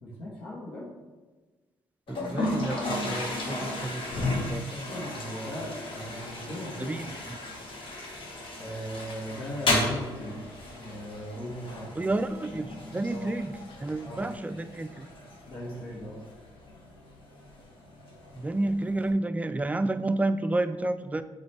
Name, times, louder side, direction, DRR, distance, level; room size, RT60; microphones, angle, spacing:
voice 1, 0.0-0.9 4.1-7.3 8.6-12.0 13.1-13.3 14.0-14.2 15.5-16.2, equal, 90° left, -8 dB, 1.6 m, -39 dB
Toilet flush, 2.1-19.1, left 1 dB, 65° left, 1.6 m, -35 dB
voice 2, 2.1-4.7 6.8-7.4 12.0-15.1 18.3-21.2, right 2 dB, 15° right, 11 dB, 0.4 m, -30 dB
7.7 x 3.1 x 4.2 m, 1.3 s
cardioid pair, 80°, 9 cm